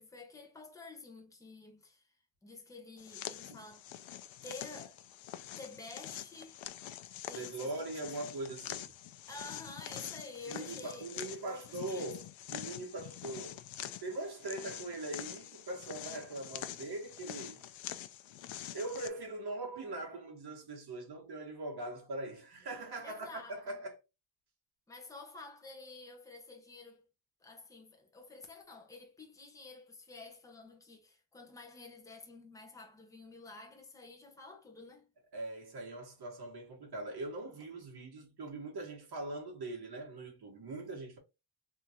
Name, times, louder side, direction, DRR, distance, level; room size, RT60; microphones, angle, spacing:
voice 1, 0.0-2.1 2.4-3.8 4.4-5.0 5.6-6.6 7.3-7.7 8.2-8.3 9.3-12.1 23.0-23.8 24.9-27.0 27.4-35.1, left 3 dB, 5° left, 0.8 m, -50 dB
sound 1, 3.0-19.1, left 12 dB, 85° left, 0.5 m, -45 dB
voice 2, 7.3-8.9 10.5-13.6 14.0-17.7 18.7-24.0 35.3-41.2, right 2 dB, 55° right, 1.7 m, -41 dB
3.6 x 2.7 x 2.9 m
wide cardioid pair, 175°, 45 cm